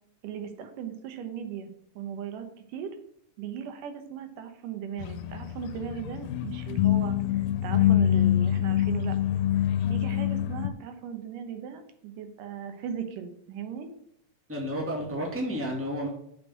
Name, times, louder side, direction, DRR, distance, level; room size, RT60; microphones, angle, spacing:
voice 1, 0.2-1.7 2.0-3.0 3.4-9.2 9.6-13.9, right 8 dB, 85° right, 7 dB, 2.7 m, -38 dB
sound 1, 5.0-10.7, left 11 dB, 85° left, 2.2 m, -25 dB
voice 2, 14.5-16.1, equal, 5° right, -1 dB, 1.6 m, -31 dB
7.6 x 5.5 x 7.4 m, 0.70 s
omnidirectional pair, 3.7 m